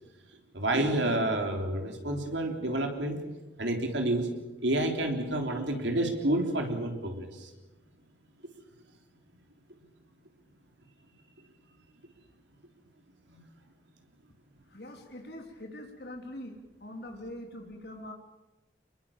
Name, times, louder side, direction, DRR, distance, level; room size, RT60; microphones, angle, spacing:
voice 1, 0.5-3.2 3.6-4.3 4.6-7.5 13.3-13.4, right 1 dB, 85° right, 4 dB, 3.6 m, -29 dB
voice 2, 14.7-16.5 16.8-18.1, left 1 dB, 60° left, 3 dB, 3.5 m, -43 dB
25.0 x 22.0 x 7.3 m, 1.1 s
head